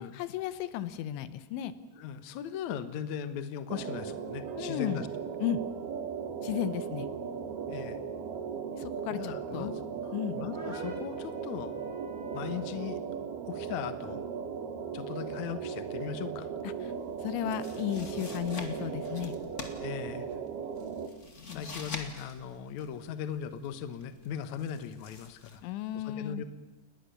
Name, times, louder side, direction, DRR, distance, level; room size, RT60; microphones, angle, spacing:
voice 1, 0.0-1.7 4.6-5.0 5.4-5.6 6.4-7.1 8.7-9.7 10.1-10.4 16.6-16.9 17.2-19.4 21.5-21.6 25.6-26.5, left 10 dB, 85° left, 13 dB, 3.5 m, -34 dB
voice 2, 2.0-5.1 7.7-8.0 9.1-9.7 10.0-11.7 12.3-13.0 13.4-14.2 14.9-16.5 19.8-20.3 21.5-25.6 25.9-26.4, left 9 dB, 65° left, 11 dB, 1.9 m, -38 dB
sound 1, 3.7-21.1, right 6 dB, 65° right, 3.3 m, -37 dB
sound 2, 10.5-12.7, left 2 dB, 10° right, 5.8 m, -46 dB
sound 3, 16.7-25.6, left 3 dB, 30° left, 1.3 m, -47 dB
29.0 x 21.0 x 7.0 m, 1.0 s
omnidirectional pair, 5.2 m